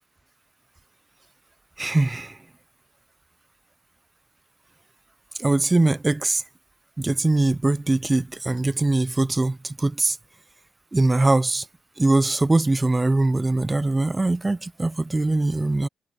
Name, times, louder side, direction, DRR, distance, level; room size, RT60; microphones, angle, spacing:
voice 1, 1.8-2.3 5.4-6.4 7.0-10.2 10.9-11.6 12.0-15.9, right 2 dB, 15° right, 0.7 m, -22 dB
cardioid pair, 90°, 0 cm